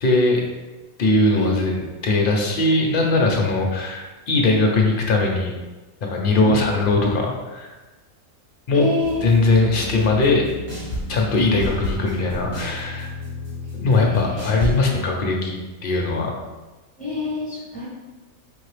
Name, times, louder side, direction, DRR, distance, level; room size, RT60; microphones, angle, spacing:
voice 1, 0.0-0.4 1.0-5.5 6.0-7.7 8.7-8.9 9.2-10.4 11.1-13.1 13.7-16.3, left 2 dB, 50° left, 0 dB, 0.7 m, -20 dB
voice 2, 8.7-9.2 14.1-14.4 14.7-15.0 17.0-17.9, left 3 dB, 5° left, -7 dB, 1.1 m, -27 dB
sound 1, 9.0-14.8, left 1 dB, 45° right, 1.5 m, -31 dB
4.6 x 2.8 x 3.2 m, 1.2 s
omnidirectional pair, 1.5 m